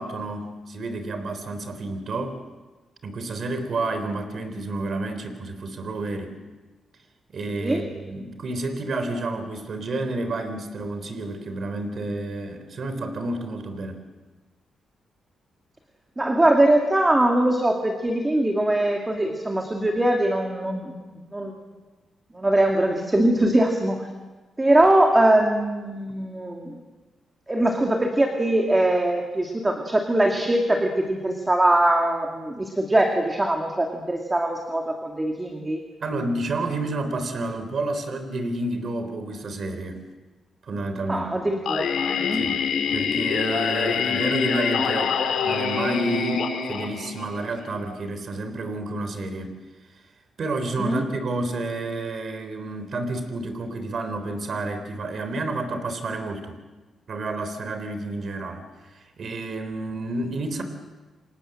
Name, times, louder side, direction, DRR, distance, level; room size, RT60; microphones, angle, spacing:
voice 1, 0.0-2.4 3.0-6.3 7.3-14.0 36.0-40.0 40.7-41.3 42.3-42.6 42.9-49.5 50.4-56.6 57.1-60.6, right 2 dB, 45° right, 8 dB, 3.6 m, -30 dB
voice 2, 16.2-21.6 22.3-24.1 24.6-26.8 27.5-35.8 41.1-42.4 50.8-51.1, right 1 dB, 15° right, 2 dB, 2.4 m, -22 dB
Singing, 41.6-47.6, left 6 dB, 80° left, 4.7 m, -25 dB
29.5 x 26.0 x 7.9 m, 1.3 s
wide cardioid pair, 155°, 0 cm